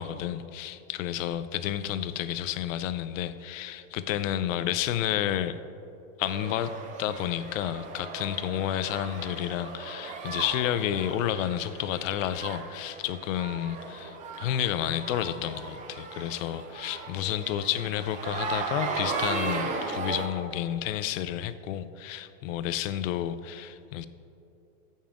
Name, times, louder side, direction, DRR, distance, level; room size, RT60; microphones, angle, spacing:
voice 1, 0.0-5.6 6.2-6.7 7.0-24.1, left 11 dB, 65° left, 13 dB, 0.5 m, -31 dB
sound 1, 6.2-20.3, right 4 dB, 20° right, 0.4 m, -36 dB
15.5 x 5.5 x 2.5 m, 2.8 s
supercardioid pair, 145°, 42 cm